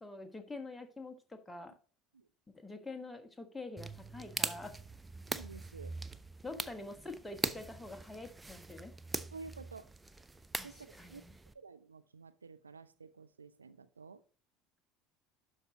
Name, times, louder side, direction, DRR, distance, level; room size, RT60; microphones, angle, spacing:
voice 1, 0.0-1.7 2.6-4.7 6.4-8.9 10.6-11.3, left 2 dB, 10° left, 4 dB, 1.3 m, -46 dB
sound 1, 3.8-11.5, right 2 dB, 10° right, 0.5 m, -42 dB
voice 2, 5.3-5.9 6.5-6.7 9.3-9.9 10.6-11.2 11.5-14.2, right 4 dB, 80° right, 12 dB, 0.4 m, -51 dB
12.0 x 4.7 x 2.8 m, 0.40 s
figure-of-eight pair, 65°, 0 cm